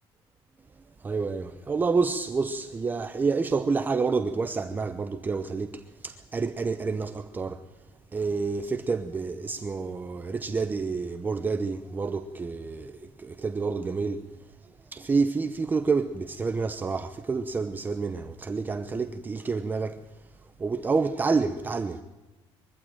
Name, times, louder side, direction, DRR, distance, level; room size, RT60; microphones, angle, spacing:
voice 1, 1.0-7.6 8.1-14.2 14.6-20.0 20.6-22.0, right 4 dB, 20° right, 0.8 m, -28 dB
23.0 x 15.0 x 9.1 m
cardioid pair, 150°, 10 cm